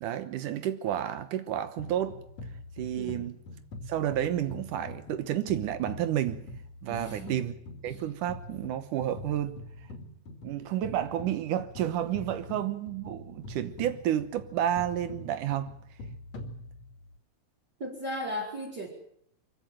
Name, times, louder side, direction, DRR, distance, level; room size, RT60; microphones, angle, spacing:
voice 1, 0.0-2.2 2.8-3.4 3.9-6.5 6.8-7.5 7.8-9.6 10.4-15.7, right 11 dB, 85° right, 2.7 m, -31 dB
sound 1, 1.8-17.2, left 1 dB, 60° left, 3.4 m, -44 dB
voice 2, 2.9-3.3 6.9-7.4 17.8-18.9, equal, 30° right, 5.7 m, -36 dB
24.0 x 16.0 x 9.0 m
omnidirectional pair, 3.6 m